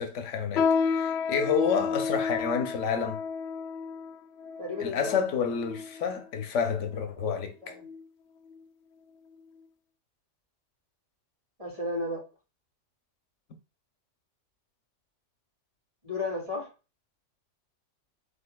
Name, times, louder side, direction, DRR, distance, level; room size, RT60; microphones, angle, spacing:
voice 1, 0.0-3.2 4.8-7.7, left 6 dB, 90° left, 1.1 m, -29 dB
sound 1, 0.6-6.2 6.9-7.0 7.8-8.1 8.5-8.6 9.3-9.4, left 5 dB, 70° left, 0.8 m, -31 dB
voice 2, 4.6-5.2 6.9-7.8 11.6-12.2 16.0-16.7, left 2 dB, 30° right, 2.6 m, -34 dB
5.2 x 4.1 x 2.2 m
omnidirectional pair, 1.2 m